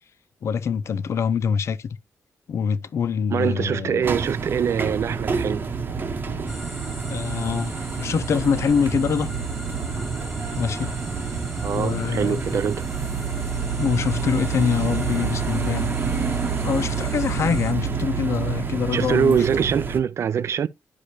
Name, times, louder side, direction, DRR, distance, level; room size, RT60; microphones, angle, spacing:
voice 1, 0.4-2.0 2.5-4.1 7.1-9.3 10.6-10.9 11.7-12.6 13.8-19.4, left 7 dB, 60° left, 0.5 m, -25 dB
voice 2, 3.3-5.6 11.6-12.9 18.9-20.7, right 7 dB, 60° right, 0.4 m, -23 dB
sound 1, 4.0-20.0, right 5 dB, 40° right, 0.9 m, -28 dB
sound 2, 6.5-17.7, equal, ahead, 0.8 m, -41 dB
9.9 x 4.9 x 2.7 m
wide cardioid pair, 150°, 5 cm